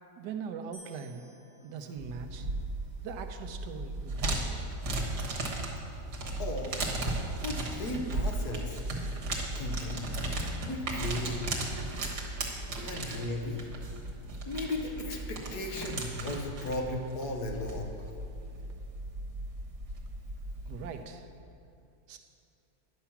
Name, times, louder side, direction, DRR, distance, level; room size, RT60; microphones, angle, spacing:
voice 1, 0.2-1.2 1.6-2.5 3.0-4.7 12.8-12.9 20.7-21.3 22.1-22.2, right 6 dB, 90° right, 6 dB, 1.4 m, -41 dB
sound 1, 0.7-4.0, left 1 dB, 35° left, 2.5 m, -58 dB
sound 2, 2.0-21.0, right 2 dB, 70° right, 1.9 m, -36 dB
voice 2, 6.4-6.8 7.4-8.8 9.6-10.1 10.6-11.6 12.7-13.7 14.4-18.1, left 2 dB, 70° left, 3 dB, 1.6 m, -36 dB
11.0 x 5.7 x 7.2 m, 2.5 s
omnidirectional pair, 1.8 m